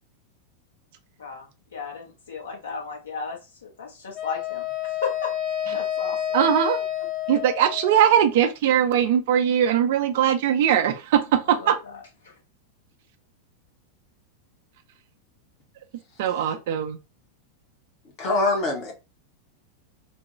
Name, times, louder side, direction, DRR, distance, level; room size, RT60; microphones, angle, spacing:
voice 1, 1.2-5.3 5.7-6.4 11.5-12.3, left 5 dB, 65° left, 1.1 m, -35 dB
Wind instrument woodwind instrument, 4.1-8.3, left 10 dB, 20° left, 0.5 m, -29 dB
voice 2, 6.3-6.8 7.3-11.8 16.2-17.0, right 9 dB, 50° right, 0.5 m, -20 dB
voice 3, 18.2-18.9, left 2 dB, 40° left, 1.0 m, -23 dB
3.4 x 2.2 x 3.0 m
figure-of-eight pair, 90°, 0 cm